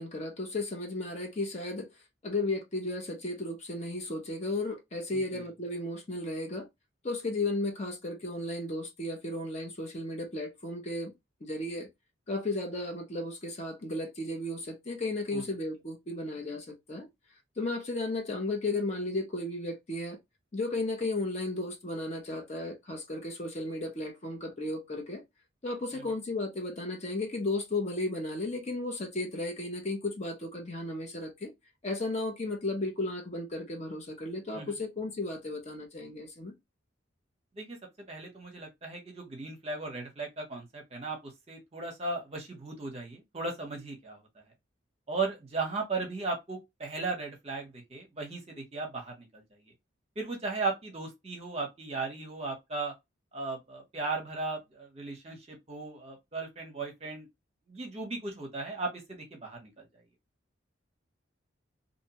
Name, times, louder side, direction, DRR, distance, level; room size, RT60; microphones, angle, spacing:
voice 1, 0.0-1.9 2.2-6.7 7.0-11.1 11.4-11.9 12.3-17.1 17.6-20.2 20.5-25.2 25.6-31.5 31.8-36.5, left 2 dB, 35° left, 0.6 m, -34 dB
voice 2, 38.1-41.2 41.5-44.2 45.1-49.7 50.2-52.9 53.3-57.3 57.7-59.8, right 3 dB, 30° right, 0.8 m, -36 dB
2.6 x 2.1 x 2.8 m
head